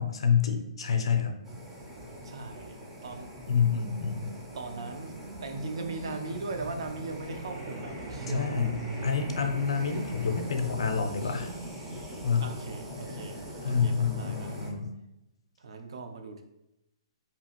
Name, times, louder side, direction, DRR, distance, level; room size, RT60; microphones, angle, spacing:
voice 1, 0.0-1.3 3.5-4.3 8.3-8.7 9.0-11.5 12.2-12.5 13.6-14.9, left 6 dB, 80° left, 5 dB, 0.4 m, -27 dB
sound 1, 1.4-14.7, equal, 10° right, 0.4 m, -42 dB
voice 2, 2.2-2.8 3.0-3.3 4.5-8.6 12.4-14.8 15.6-16.4, right 3 dB, 70° right, 5 dB, 0.4 m, -39 dB
sound 2, 3.4-14.7, right 2 dB, 45° right, 1.0 m, -45 dB
2.7 x 2.4 x 2.9 m, 0.90 s
hypercardioid pair, 170°, 3 cm